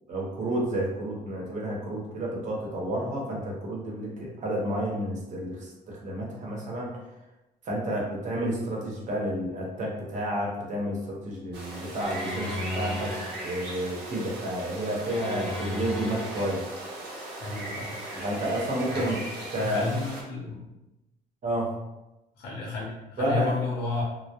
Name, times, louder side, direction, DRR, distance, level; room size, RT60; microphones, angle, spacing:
voice 1, 0.1-6.9 7.7-13.1 13.4-16.6 18.1-19.2 19.5-19.9 21.4-21.7 23.2-23.5, right 1 dB, 45° right, -2 dB, 0.8 m, -30 dB
sound 1, 11.5-20.2, right 2 dB, 75° right, 0.6 m, -39 dB
sound 2, 12.0-13.7 15.0-16.8, left 1 dB, ahead, 0.6 m, -35 dB
voice 2, 17.4-17.9 18.9-19.2 19.5-20.6 22.4-24.0, left 3 dB, 75° left, -4 dB, 0.7 m, -32 dB
2.2 x 2.0 x 2.8 m, 0.96 s
cardioid pair, 110°, 17 cm